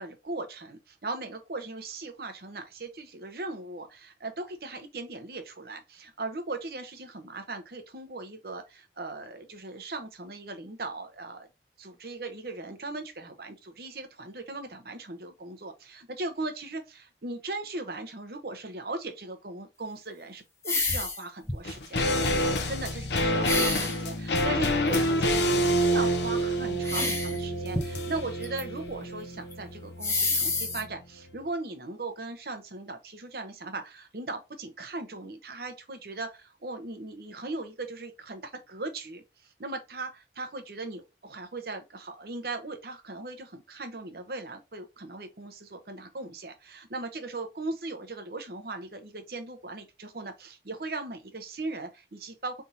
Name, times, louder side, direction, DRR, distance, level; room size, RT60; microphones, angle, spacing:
voice 1, 0.0-11.5 11.8-22.2 22.7-52.6, right 2 dB, 55° right, 0.8 m, -38 dB
sound 1, 20.6-21.2 21.5-21.8 23.4-24.0 24.9-25.0 26.8-27.4 27.7-28.6 28.9-29.0 29.5-29.6 30.0-30.8, left 3 dB, 15° left, 0.8 m, -28 dB
sound 2, 21.6-31.0 31.3-31.4, equal, 80° left, 0.7 m, -28 dB
4.3 x 3.5 x 2.7 m
head